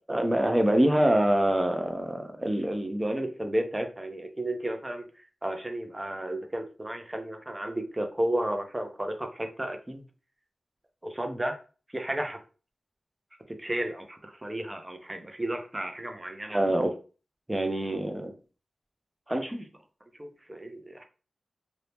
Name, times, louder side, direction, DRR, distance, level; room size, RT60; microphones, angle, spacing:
voice 1, 0.1-5.0 5.4-10.0 11.0-11.6 11.9-12.4 13.5-17.0 17.5-18.3 19.3-19.7 20.2-21.0, right 1 dB, 15° right, 5 dB, 0.7 m, -29 dB
2.8 x 2.8 x 3.4 m, 0.36 s
wide cardioid pair, 100°, 0 cm